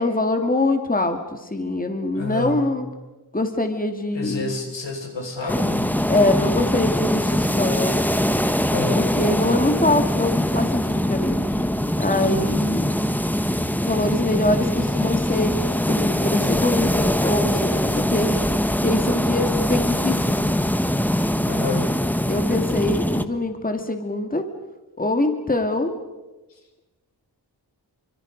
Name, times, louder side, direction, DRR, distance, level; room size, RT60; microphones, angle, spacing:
voice 1, 0.0-2.9 3.3-4.5 6.1-8.0 8.9-11.5 12.0-12.9 13.8-15.6 15.9-18.3 18.8-20.5 22.3-24.4 25.0-25.9, left 2 dB, 20° left, 6 dB, 2.2 m, -23 dB
voice 2, 2.1-2.7 4.1-6.0 8.7-9.1 12.2-12.7 21.4-22.1 26.5-26.6, left 2 dB, 85° left, 4 dB, 5.0 m, -30 dB
sound 1, 5.5-23.3, equal, 5° left, 1.2 m, -22 dB
28.5 x 25.0 x 5.3 m, 1.1 s
wide cardioid pair, 95°, 42 cm